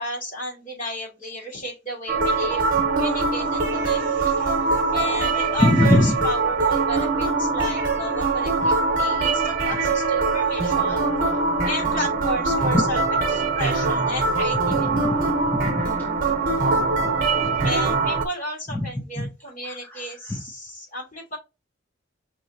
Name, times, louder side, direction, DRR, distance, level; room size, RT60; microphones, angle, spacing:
voice 1, 0.0-11.1 11.6-13.0 13.3-14.7 17.6-21.4, equal, 40° left, -2 dB, 2.8 m, -33 dB
sound 1, 2.1-18.3, right 3 dB, 45° right, 1.0 m, -22 dB
voice 2, 5.6-6.2 12.6-12.8 14.7-15.9 16.7-17.1 17.4-17.7 18.7-18.9 19.2-19.3 19.6-20.4, left 1 dB, 10° left, 0 dB, 0.7 m, -23 dB
5.9 x 3.0 x 2.7 m, 0.26 s
head